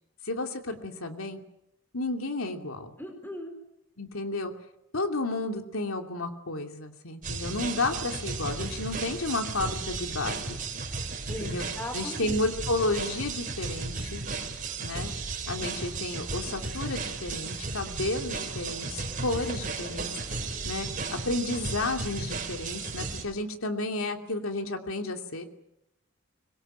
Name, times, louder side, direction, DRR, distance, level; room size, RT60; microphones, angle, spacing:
voice 1, 0.2-1.4 1.9-2.9 4.0-4.5 4.9-10.6 11.4-11.6 11.9-14.2 14.8-15.1 15.5-20.1 20.6-25.5, left 2 dB, 80° left, 4 dB, 2.8 m, -32 dB
voice 2, 3.0-3.5 11.3-12.4 12.7-12.8, left 1 dB, 10° left, 5 dB, 4.4 m, -38 dB
sound 1, 7.2-23.2, right 4 dB, 40° right, 4.5 m, -35 dB
24.5 x 22.0 x 9.2 m, 0.84 s
head